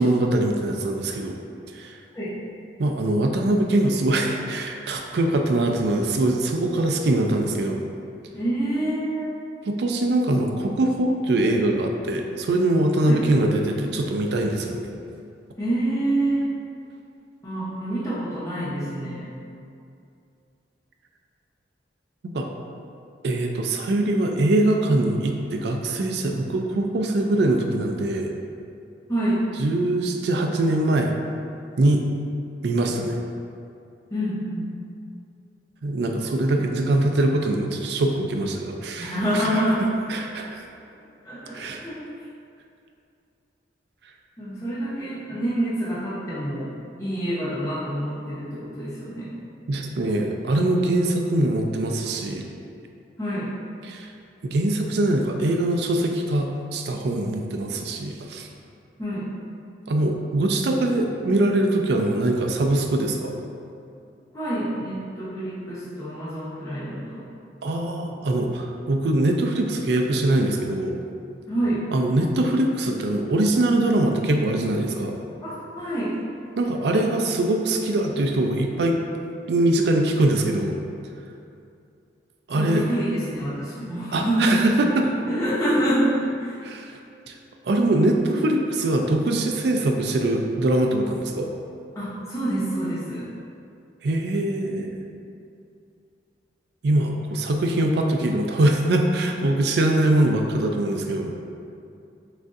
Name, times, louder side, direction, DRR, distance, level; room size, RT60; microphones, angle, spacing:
voice 1, 0.0-1.3 1.7-1.9 2.8-7.8 9.7-14.9 22.3-22.5 23.2-28.3 29.6-31.1 31.8-32.0 32.6-33.2 35.8-39.1 40.1-40.6 41.5-41.8 49.7-52.5 53.8-54.1 54.4-58.5 59.9-63.4 67.6-71.0 71.9-75.2 76.6-79.0 79.5-80.8 82.5-82.8 84.1-85.0 86.6-86.9 87.3-87.4 87.6-91.5 94.0-95.0 96.8-101.3, right 1 dB, 65° right, 3 dB, 0.4 m, -22 dB
voice 2, 8.3-9.3 13.0-13.2 15.6-16.5 17.4-19.3 29.1-29.4 34.1-34.7 39.0-39.9 41.2-42.0 44.4-46.7 47.0-49.3 53.2-53.5 59.0-59.3 64.3-67.3 71.5-71.8 75.4-76.2 82.5-84.7 85.0-86.6 92.0-93.3, right 1 dB, 15° left, -11 dB, 0.8 m, -27 dB
6.0 x 2.6 x 2.5 m, 2.5 s
head